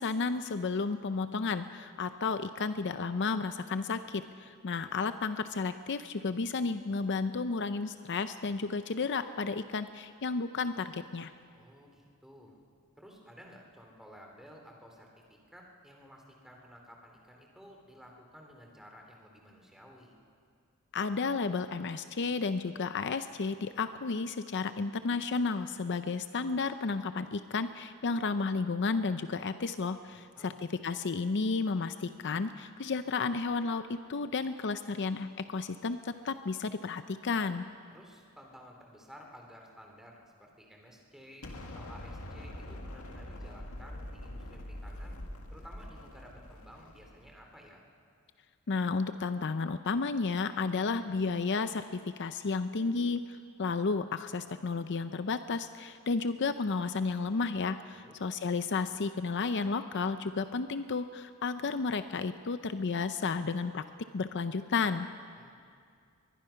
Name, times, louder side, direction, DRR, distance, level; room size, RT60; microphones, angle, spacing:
voice 1, 0.0-11.3 20.9-37.6 48.7-63.8 64.1-65.1, left 4 dB, 55° left, 10 dB, 0.6 m, -32 dB
voice 2, 11.5-12.6 13.0-20.1 30.1-30.5 37.9-45.2 45.5-47.8 57.9-58.2 65.4-65.5, equal, ahead, 1 dB, 3.1 m, -54 dB
Explosion, 41.4-47.4, left 1 dB, 85° left, 2.1 m, -44 dB
22.0 x 22.0 x 5.8 m, 2.3 s
head